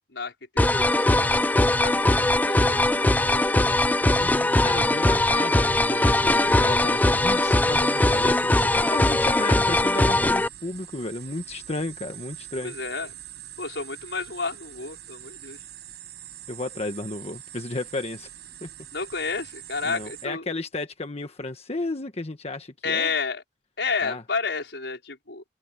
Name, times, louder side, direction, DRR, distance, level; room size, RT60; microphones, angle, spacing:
voice 1, 0.1-1.4 1.8-3.6 12.6-13.1 13.6-15.6 18.9-20.5 22.8-23.4 23.8-25.4, left 4 dB, 80° left, 5.2 m, -31 dB
sound 1, 0.6-10.5, left 1 dB, 10° left, 0.5 m, -21 dB
voice 2, 4.2-12.7 16.5-18.3 18.6-18.7 19.8-23.1 24.0-24.2, left 2 dB, 35° left, 1.3 m, -33 dB
sound 2, 5.4-20.3, right 12 dB, 70° right, 7.2 m, -44 dB
head